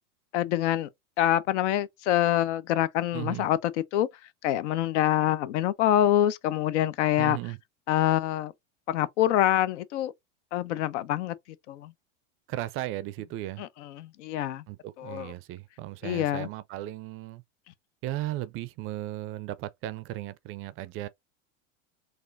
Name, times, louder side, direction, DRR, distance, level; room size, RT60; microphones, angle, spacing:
voice 1, 0.3-0.9 1.2-4.1 4.4-7.4 7.9-8.5 8.9-10.1 10.5-11.3 11.7-11.9 13.6-14.6 15.0-15.3 16.0-16.5, left 12 dB, 70° left, 0.6 m, -26 dB
voice 2, 3.1-3.5 7.2-7.6 12.5-13.7 14.7-17.4 18.0-21.1, right 15 dB, 35° right, 0.4 m, -36 dB
4.2 x 2.5 x 2.6 m
hypercardioid pair, 105°, 37 cm